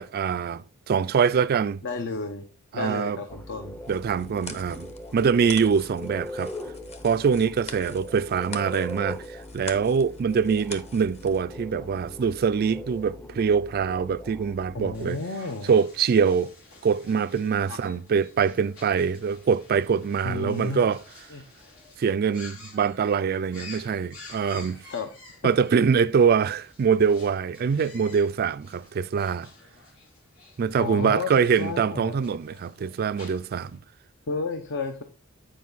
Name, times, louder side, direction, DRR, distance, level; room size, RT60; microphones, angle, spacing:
voice 1, 0.0-1.8 2.7-3.2 3.9-6.5 7.0-15.2 15.7-16.5 16.8-21.0 22.0-24.8 25.4-29.5 30.6-33.8, right 6 dB, 45° right, 0.3 m, -24 dB
voice 2, 1.8-2.4 2.7-3.8 14.7-15.7 17.7-17.8 20.2-20.8 21.3-21.4 24.9-25.1 30.8-32.2 34.3-35.0, left 3 dB, 60° left, 0.9 m, -32 dB
sound 1, 3.3-15.1, left 1 dB, 10° left, 0.6 m, -40 dB
sound 2, 3.8-11.4, left 4 dB, 30° left, 1.0 m, -44 dB
sound 3, 14.9-33.8, left 3 dB, 80° left, 3.1 m, -50 dB
9.3 x 5.1 x 4.0 m
head